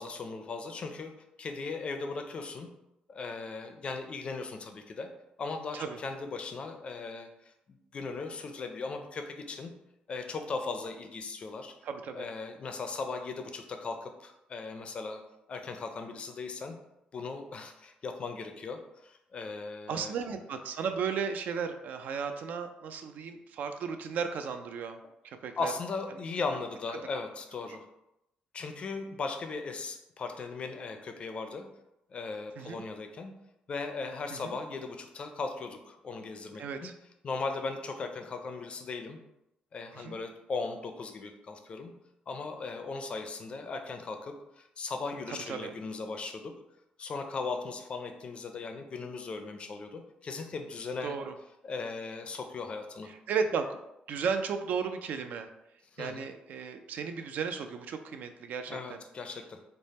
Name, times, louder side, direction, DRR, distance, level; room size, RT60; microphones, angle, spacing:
voice 1, 0.0-2.7 3.1-5.1 5.4-9.7 10.1-11.7 12.1-15.2 15.5-16.8 17.1-20.1 25.6-27.8 28.5-31.7 32.1-33.3 33.7-36.9 37.2-39.2 39.7-41.9 42.3-46.5 47.0-51.2 51.6-53.1 55.9-56.3 58.7-59.6, left 4 dB, 40° left, 6 dB, 0.4 m, -38 dB
voice 2, 11.8-12.3 19.9-25.0 25.2-25.7 32.6-32.8 34.3-34.6 36.6-36.9 39.9-40.2 45.3-45.7 51.0-51.3 53.1-53.8 54.1-55.5 56.0-59.0, right 6 dB, 70° right, 7 dB, 0.3 m, -35 dB
3.3 x 2.1 x 4.1 m, 0.86 s
cardioid pair, 140°, 3 cm